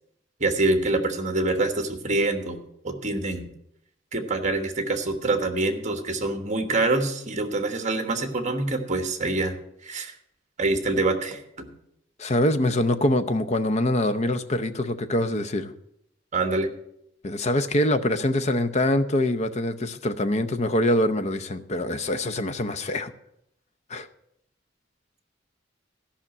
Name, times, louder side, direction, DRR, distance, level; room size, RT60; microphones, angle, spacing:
voice 1, 0.4-2.6 2.8-3.5 4.1-9.6 9.8-10.1 10.6-11.7 16.3-16.7, right 2 dB, 40° right, 6 dB, 1.3 m, -25 dB
voice 2, 12.2-15.7 17.2-23.1 23.9-24.1, left 1 dB, 35° left, 10 dB, 0.7 m, -24 dB
13.5 x 5.8 x 7.3 m, 0.77 s
head